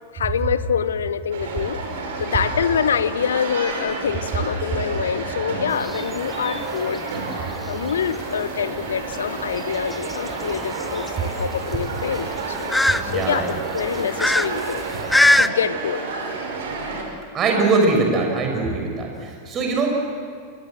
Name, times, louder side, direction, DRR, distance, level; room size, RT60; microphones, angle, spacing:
voice 1, 0.1-1.8 2.2-7.0 7.7-13.4 13.7-14.8 15.4-16.1 19.6-19.8, left 7 dB, 65° left, 15 dB, 0.9 m, -25 dB
sound 1, 1.3-17.0, right 3 dB, 60° right, 4.7 m, -30 dB
sound 2, 5.7-15.5, left 1 dB, 5° left, 0.7 m, -24 dB
voice 2, 13.1-13.5 17.3-19.9, right 3 dB, 30° right, 2 dB, 6.2 m, -21 dB
28.0 x 20.0 x 7.8 m, 2.2 s
figure-of-eight pair, 90°, 0 cm